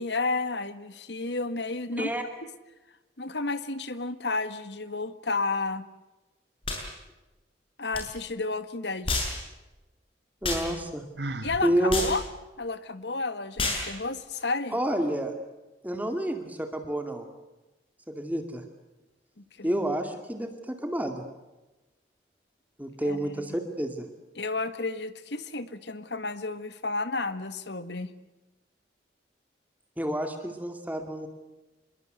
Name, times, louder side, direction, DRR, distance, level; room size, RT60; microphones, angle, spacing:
voice 1, 0.0-2.1 3.2-5.8 7.8-9.2 11.4-12.2 12.6-14.8 19.4-19.8 23.1-23.3 24.4-28.1, left 3 dB, 70° left, 12 dB, 1.8 m, -32 dB
sound 1, 6.6-6.8 7.9-8.1 9.1-9.4 10.4-10.7 11.9-12.2 13.6-13.9, left 2 dB, 30° left, 7.0 m, -29 dB
voice 2, 10.4-11.0 11.6-12.0 14.7-15.3 15.8-17.3 18.1-18.6 19.6-21.2 22.8-24.1 30.0-31.3, right 1 dB, 10° right, 6 dB, 2.3 m, -29 dB
Sigh, 11.2-11.7, right 2 dB, 65° right, 1.5 m, -34 dB
26.5 x 22.0 x 8.1 m, 1.1 s
head